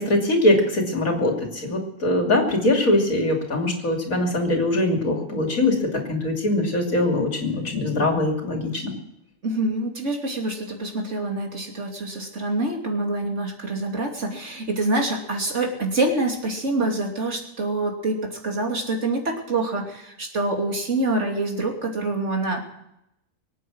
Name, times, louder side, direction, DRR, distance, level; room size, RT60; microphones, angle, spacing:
voice 1, 0.0-5.8 6.1-8.9, left 1 dB, 90° left, 2 dB, 3.3 m, -22 dB
voice 2, 9.4-22.6, right 2 dB, 60° right, 1 dB, 3.1 m, -26 dB
23.0 x 9.0 x 6.3 m, 0.83 s
omnidirectional pair, 1.4 m